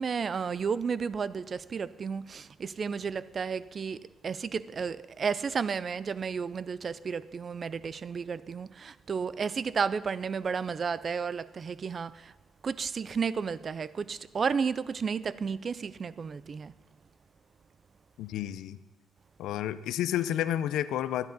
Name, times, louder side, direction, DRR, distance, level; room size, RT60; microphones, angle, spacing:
voice 1, 0.0-12.3 12.6-16.7, right 6 dB, 45° right, 0.4 m, -32 dB
voice 2, 18.2-18.8 19.4-21.3, left 11 dB, 85° left, 0.5 m, -30 dB
13.5 x 10.5 x 4.0 m
cardioid pair, 90°, 0 cm